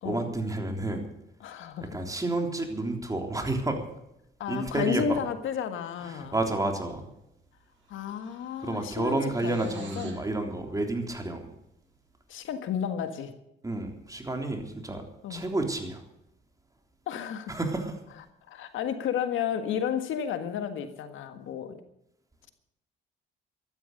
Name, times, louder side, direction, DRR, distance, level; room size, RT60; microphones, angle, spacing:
voice 1, 0.0-1.1 1.9-3.8 4.5-5.2 6.0-7.0 8.6-11.5 13.6-15.0 15.3-16.0 17.5-18.0, right 2 dB, 15° right, 4 dB, 3.5 m, -30 dB
voice 2, 1.4-1.9 4.4-6.4 7.9-10.1 12.3-13.3 15.2-15.5 17.1-17.6 18.5-21.8, left 8 dB, 80° left, 9 dB, 1.7 m, -32 dB
sound 1, 7.1-7.3 7.6-10.3, right 5 dB, 75° right, 5.6 m, -52 dB
13.5 x 12.5 x 6.7 m, 0.82 s
cardioid pair, 90°, 20 cm